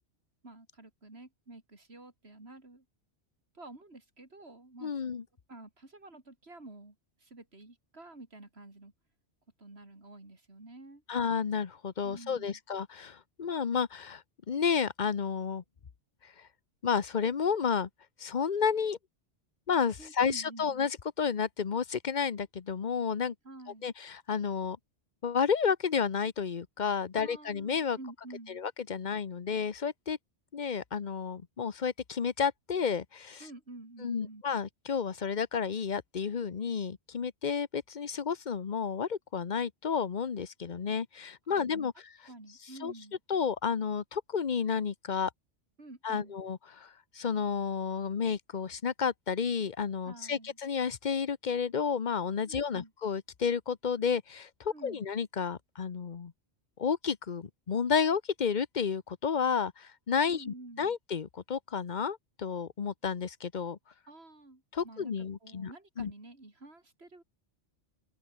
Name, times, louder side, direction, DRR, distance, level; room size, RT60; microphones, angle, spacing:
voice 1, 0.4-2.8 3.5-4.9 5.5-8.9 9.6-11.0 12.0-12.6 20.0-20.8 23.4-23.9 27.2-28.6 33.4-34.4 41.5-41.8 42.3-43.2 45.8-46.4 50.0-50.6 52.4-52.9 54.7-55.1 60.3-60.9 64.1-67.2, right 2 dB, 60° right, 4.7 m, -50 dB
voice 2, 4.8-5.2 11.1-15.6 16.8-17.9 18.2-19.0 19.7-23.3 23.8-24.8 25.2-28.0 28.6-30.2 30.5-33.5 34.0-41.9 42.8-42.9 43.3-45.3 46.0-56.3 56.8-63.8 64.7-65.7 66.0-66.1, left 6 dB, 45° left, 1.0 m, -31 dB
open air
omnidirectional pair, 1.2 m